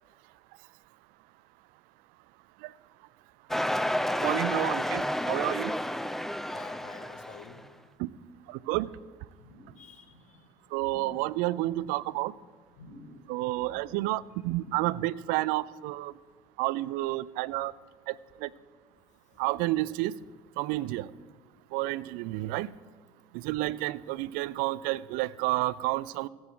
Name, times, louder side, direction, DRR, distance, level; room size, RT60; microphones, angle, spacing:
sound 1, 3.5-7.6, equal, ahead, 0.6 m, -30 dB
voice 1, 4.2-5.7 8.0-8.1 8.7-8.9 10.7-12.3 13.3-16.1 16.6-17.7 18.1-18.2 18.4-18.5 19.4-20.1 20.6-21.1 21.7-22.7 23.4-26.3, right 18 dB, 65° right, 20 dB, 0.5 m, -30 dB
voice 2, 6.5-7.6 9.8-10.5 23.4-23.6, left 7 dB, 50° left, 8 dB, 1.7 m, -50 dB
sound 2, 9.3-9.8 10.1-10.4 10.8-11.3 11.6-12.1 12.7-13.2 13.5-14.0 14.4-14.9 15.3-15.4, left 2 dB, 70° left, 3.8 m, -52 dB
15.5 x 7.9 x 8.3 m, 1.5 s
hypercardioid pair, 65°, 16 cm